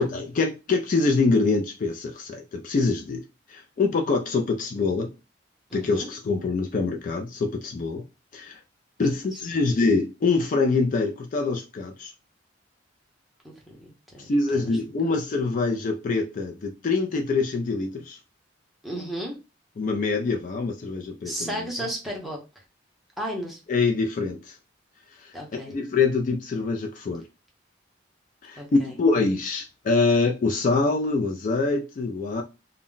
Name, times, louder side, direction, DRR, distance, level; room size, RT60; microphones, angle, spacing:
voice 1, 0.0-3.2 3.5-5.1 5.7-8.0 8.3-8.6 9.0-12.1 14.2-18.2 19.8-21.6 23.7-24.6 25.1-27.2 28.4-32.4, left 3 dB, 40° left, 0.3 m, -25 dB
voice 2, 5.7-6.1 9.3-9.4 13.4-14.6 15.0-15.1 18.8-19.3 21.2-22.6 23.2-23.6 25.3-25.7 28.6-28.9, equal, ahead, 0.7 m, -34 dB
2.1 x 2.1 x 3.7 m
head